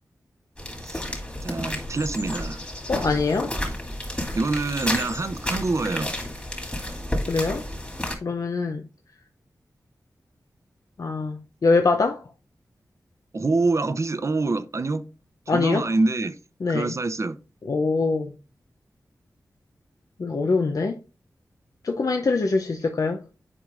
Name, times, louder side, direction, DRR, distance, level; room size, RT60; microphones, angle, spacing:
sound 1, 0.6-8.1, left 1 dB, 20° left, 2.6 m, -31 dB
voice 1, 1.4-2.6 4.3-6.1 13.3-15.1 15.5-16.3 16.7-17.4, right 3 dB, 45° right, 0.6 m, -25 dB
voice 2, 2.9-3.5 7.3-7.6 8.2-8.8 11.0-12.2 15.5-15.9 16.6-16.9 17.6-18.3 20.2-21.0 21.8-23.2, left 3 dB, 60° left, 0.6 m, -23 dB
8.6 x 4.7 x 2.5 m
cardioid pair, 50°, 7 cm